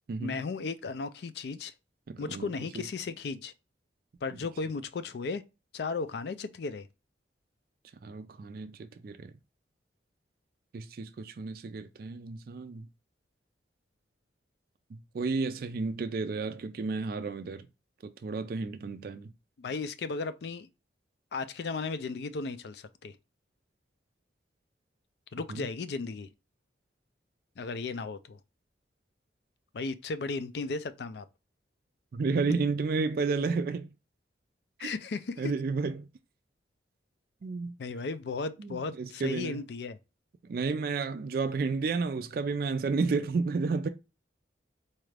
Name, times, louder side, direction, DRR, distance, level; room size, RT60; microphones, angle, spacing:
voice 1, 0.2-1.7 2.2-3.5 4.2-5.4 5.7-6.9 19.6-20.7 21.3-23.1 25.3-26.3 27.6-28.4 29.7-31.3 34.8-35.5 37.8-40.0, left 4 dB, 60° left, 0.4 m, -35 dB
voice 2, 2.1-2.8 8.0-9.3 10.7-12.9 14.9-17.7 18.0-19.3 25.5-25.7 32.1-33.9 34.8-34.9 35.4-36.1 37.4-37.7 38.6-39.6 40.4-43.9, right 4 dB, 50° right, 0.3 m, -32 dB
4.2 x 2.4 x 3.2 m
head